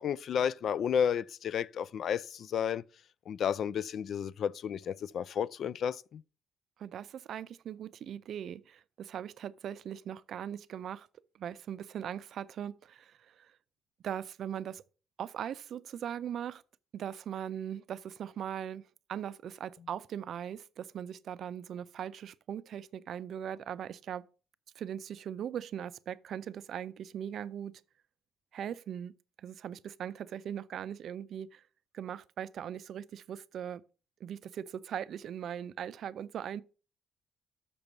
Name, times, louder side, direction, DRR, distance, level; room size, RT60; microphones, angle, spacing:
voice 1, 0.0-2.8 3.3-6.2, left 8 dB, 65° left, 0.3 m, -32 dB
voice 2, 6.8-11.1 11.4-13.5 14.0-14.8 15.2-16.6 16.9-18.8 19.1-24.3 24.8-27.8 28.5-29.1 29.4-31.6 31.9-33.8 34.2-36.6, right 9 dB, 65° right, 0.4 m, -40 dB
6.8 x 5.2 x 7.1 m
cardioid pair, 90°, 0 cm